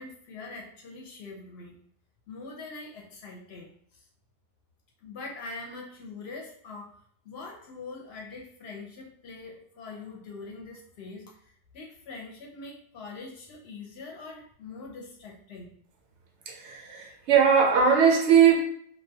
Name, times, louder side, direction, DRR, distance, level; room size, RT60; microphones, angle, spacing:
voice 1, 0.0-1.8 2.3-4.1 5.0-7.0 7.2-15.7, left 3 dB, 65° left, 0.8 m, -43 dB
voice 2, 16.5-18.6, right 7 dB, 75° right, 0.9 m, -20 dB
2.2 x 2.1 x 2.7 m
omnidirectional pair, 1.2 m